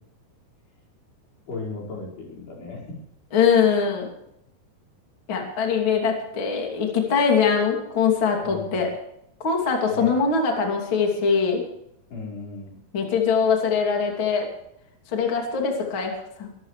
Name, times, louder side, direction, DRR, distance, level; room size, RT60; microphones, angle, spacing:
voice 1, 1.5-2.9 8.4-8.9 9.9-10.2 12.1-12.8, left 3 dB, 85° left, -3 dB, 7.3 m, -36 dB
voice 2, 3.3-4.1 5.3-8.9 9.4-11.6 12.9-14.5 15.1-16.5, left 6 dB, 35° left, 1 dB, 3.1 m, -22 dB
23.5 x 13.5 x 3.3 m, 0.78 s
omnidirectional pair, 4.6 m